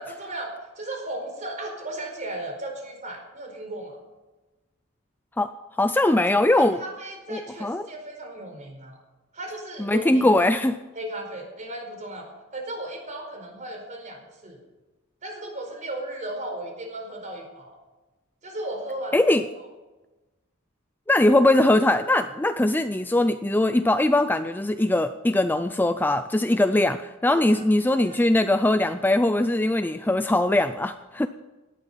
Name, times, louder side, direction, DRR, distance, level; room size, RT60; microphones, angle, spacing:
voice 1, 0.0-4.0 6.5-9.0 9.3-10.3 10.9-14.6 15.2-17.8 18.4-19.7 27.3-27.6 28.0-28.2, right 1 dB, 35° right, 3 dB, 4.5 m, -36 dB
voice 2, 5.8-6.8 7.3-7.9 9.8-10.8 19.1-19.4 21.1-31.3, left 1 dB, 10° left, 10 dB, 0.4 m, -21 dB
17.5 x 12.0 x 5.7 m, 1.1 s
head